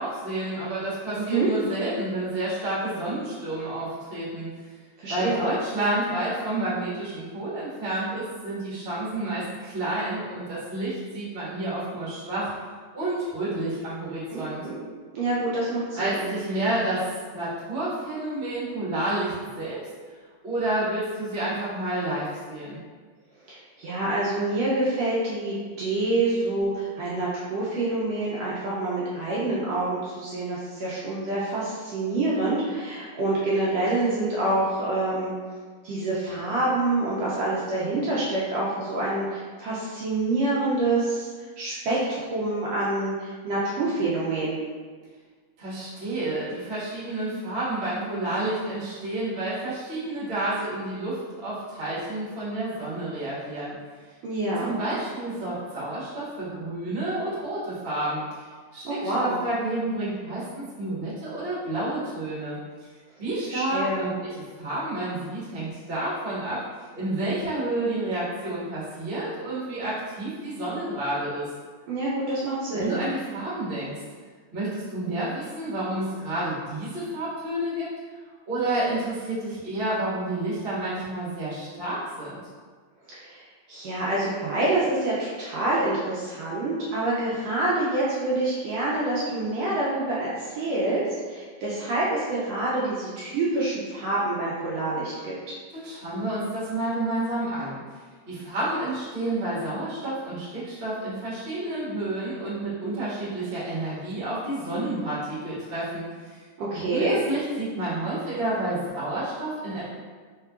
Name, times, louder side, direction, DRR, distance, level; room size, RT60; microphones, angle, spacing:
voice 1, 0.0-4.7 5.1-12.7 12.9-14.7 15.9-19.8 20.4-22.8 45.6-53.7 54.6-62.9 63.2-66.6 66.9-71.5 72.7-74.0 74.5-77.9 78.5-82.4 95.7-98.0 98.3-106.4 106.7-109.9, right 1 dB, 35° right, -9 dB, 0.9 m, -30 dB
voice 2, 1.1-1.5 5.0-5.4 14.3-14.9 15.1-16.3 23.5-35.3 35.8-41.3 41.6-44.6 54.2-54.7 58.8-59.4 63.5-64.1 71.9-73.0 83.1-83.4 83.7-95.5 106.6-107.1, right 2 dB, 75° right, -7 dB, 1.6 m, -27 dB
4.6 x 3.6 x 2.4 m, 1.5 s
omnidirectional pair, 3.3 m